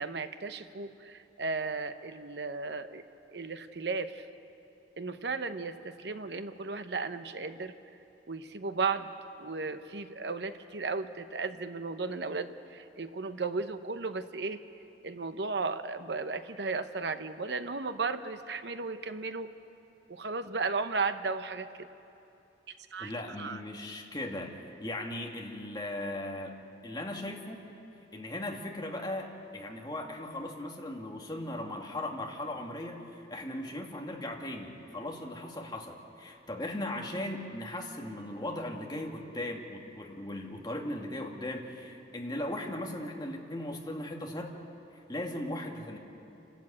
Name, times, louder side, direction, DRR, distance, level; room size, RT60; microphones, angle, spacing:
voice 1, 0.0-3.0 3.3-4.3 5.0-7.7 8.3-9.1 9.4-14.6 15.0-19.5 20.1-21.9 22.9-23.1 23.4-23.6, right 4 dB, 65° right, 10 dB, 0.9 m, -35 dB
voice 2, 23.0-24.5 24.8-26.5 26.8-27.6 28.1-44.5 45.1-46.0, left 1 dB, 25° left, 1 dB, 2.0 m, -38 dB
28.0 x 12.0 x 8.7 m, 2.9 s
head